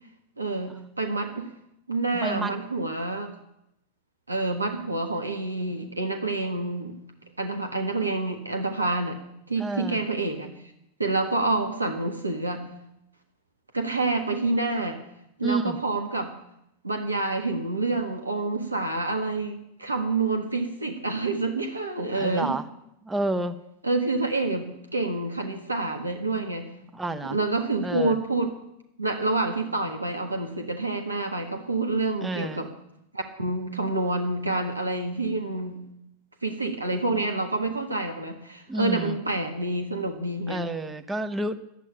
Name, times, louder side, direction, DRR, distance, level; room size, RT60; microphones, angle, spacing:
voice 1, 0.4-1.5 1.9-3.3 4.3-7.0 7.4-9.2 9.5-10.5 11.0-12.6 13.7-15.0 15.4-16.3 16.8-22.6 23.8-26.7 27.3-28.5 29.0-32.7 33.1-35.8 36.4-40.6, right 2 dB, 80° right, 4 dB, 1.5 m, -28 dB
voice 2, 2.1-2.5 9.6-10.0 15.4-15.8 22.1-22.6 23.0-23.6 26.9-27.4 27.8-28.2 32.2-32.7 38.7-39.2 40.5-41.6, right 2 dB, 10° right, 7 dB, 1.0 m, -30 dB
11.0 x 8.4 x 9.9 m, 0.82 s
figure-of-eight pair, 90°, 0 cm